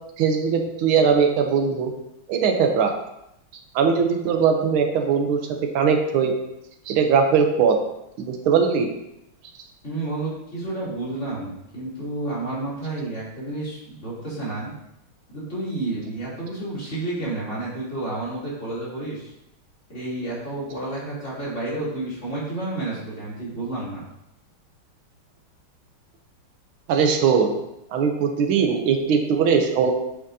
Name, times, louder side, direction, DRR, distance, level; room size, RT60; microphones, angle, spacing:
voice 1, 0.2-1.9 2.3-2.9 3.7-5.4 5.7-6.3 6.9-7.8 8.2-8.9 26.9-27.6 27.9-29.9, right 6 dB, 80° right, 4 dB, 1.6 m, -20 dB
voice 2, 9.8-14.7 15.3-19.3 19.9-24.0, right 2 dB, 35° left, -9 dB, 3.2 m, -30 dB
8.5 x 6.2 x 2.7 m, 0.85 s
omnidirectional pair, 2.3 m